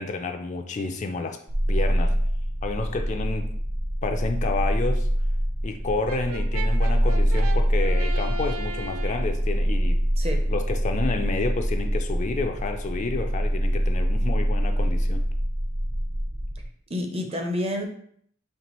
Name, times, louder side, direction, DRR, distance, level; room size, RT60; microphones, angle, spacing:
voice 1, 0.0-1.4 1.7-2.1 2.6-3.5 4.0-5.1 5.6-10.0 10.5-15.2, left 3 dB, 35° left, 5 dB, 0.3 m, -30 dB
sound 1, 1.5-16.7, equal, 60° right, 0.8 m, -25 dB
Brass instrument, 6.1-9.4, right 3 dB, 80° right, 0.4 m, -37 dB
voice 2, 10.2-10.5 16.9-17.8, left 1 dB, 30° right, 3 dB, 0.6 m, -28 dB
4.4 x 3.2 x 3.0 m, 0.64 s
head